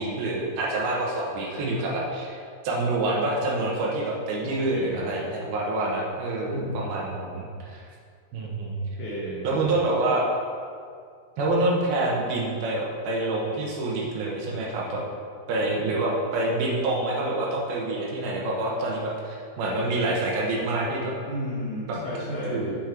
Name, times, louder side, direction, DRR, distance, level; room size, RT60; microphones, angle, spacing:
voice 1, 0.0-2.4 2.6-7.8 8.3-8.8 9.4-10.3 11.4-15.0 15.5-21.1 22.5-22.8, right 2 dB, 75° right, -3 dB, 2.9 m, -27 dB
voice 2, 4.4-5.1 6.5-6.8 8.8-9.7 21.3-22.6, equal, 60° left, -6 dB, 2.5 m, -33 dB
7.3 x 6.2 x 5.0 m, 2.2 s
omnidirectional pair, 4.6 m